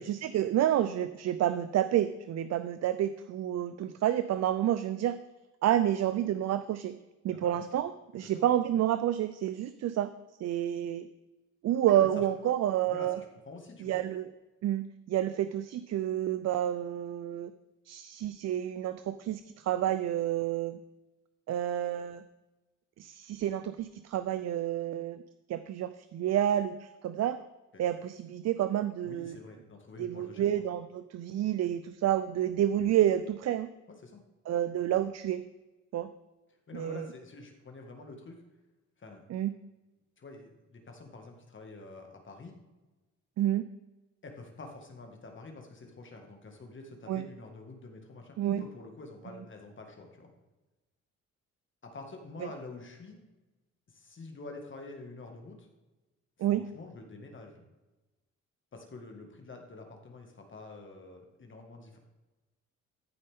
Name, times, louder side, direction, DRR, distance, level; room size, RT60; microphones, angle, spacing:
voice 1, 0.0-5.2 5.6-7.0 7.2-10.1 10.4-11.1 11.6-13.2 13.8-14.3 14.6-17.5 17.9-20.8 21.5-22.2 23.0-25.2 25.5-27.4 27.8-29.4 30.0-33.7 34.5-35.4 35.9-36.1 36.7-37.1 39.3-39.5 43.4-43.6 47.1-47.3 48.4-48.6 56.4-56.6, right 11 dB, 60° right, 12 dB, 0.5 m, -29 dB
voice 2, 7.3-7.6 8.1-8.5 11.9-12.3 12.8-14.0 27.7-27.8 29.0-30.6 33.9-34.2 36.7-38.4 39.0-39.2 40.2-42.5 44.2-50.3 51.8-53.2 53.9-55.7 56.5-57.6 58.7-62.0, left 3 dB, 40° left, 2 dB, 1.9 m, -47 dB
14.5 x 5.5 x 3.6 m, 1.1 s
cardioid pair, 90°, 30 cm